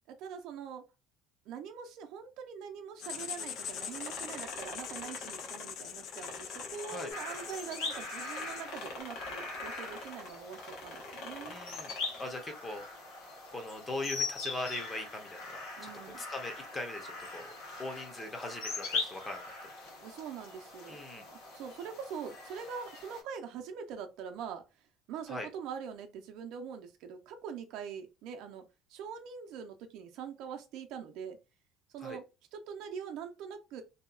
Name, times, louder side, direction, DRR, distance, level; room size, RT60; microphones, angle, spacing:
voice 1, 0.1-0.8 1.5-11.6 15.8-16.2 20.0-21.0 21.3-24.6 25.1-28.6 28.9-31.4 31.9-32.2 32.5-33.8, right 7 dB, 70° right, 0.5 m, -43 dB
Writing, 3.0-9.0, left 8 dB, 50° left, 0.3 m, -43 dB
sound 1, 3.5-8.0 8.3-12.4, left 2 dB, 70° left, 0.9 m, -46 dB
sound 2, 7.1-23.2, left 3 dB, 90° left, 1.2 m, -41 dB
voice 2, 11.5-12.8 13.5-15.9 16.2-17.5 17.8-19.4 20.9-21.3 25.3-25.5 32.0-32.2, left 2 dB, 15° left, 0.6 m, -40 dB
2.7 x 2.3 x 2.3 m
cardioid pair, 155°, 0 cm